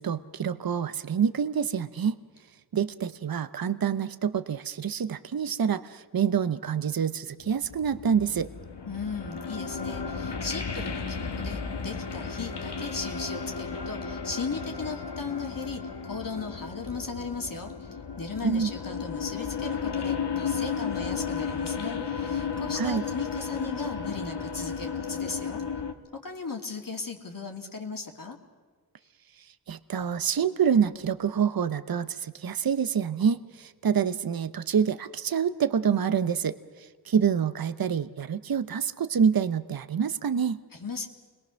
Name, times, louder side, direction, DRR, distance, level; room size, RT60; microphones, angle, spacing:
voice 1, 0.0-2.2 2.7-8.5 18.4-18.7 22.7-23.0 29.4-40.6, right 7 dB, 60° right, 13 dB, 0.8 m, -27 dB
sound 1, 7.4-25.9, left 6 dB, 90° left, 1.5 m, -34 dB
voice 2, 8.9-25.6 26.2-28.4 40.7-41.1, left 4 dB, 55° left, 2 dB, 2.5 m, -37 dB
29.0 x 22.0 x 6.4 m, 1.5 s
wide cardioid pair, 70°, 40 cm